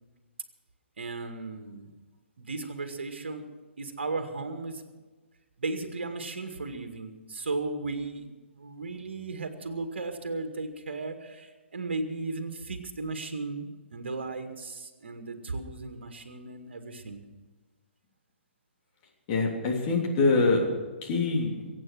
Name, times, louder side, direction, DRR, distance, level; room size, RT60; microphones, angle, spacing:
voice 1, 1.0-1.9 2.4-3.5 3.8-4.8 5.6-17.2, right 3 dB, 60° right, 6 dB, 2.1 m, -36 dB
voice 2, 19.3-20.7 21.0-21.7, left 3 dB, 30° left, 0 dB, 3.2 m, -25 dB
23.0 x 9.1 x 6.3 m, 1.3 s
figure-of-eight pair, 130°, 7 cm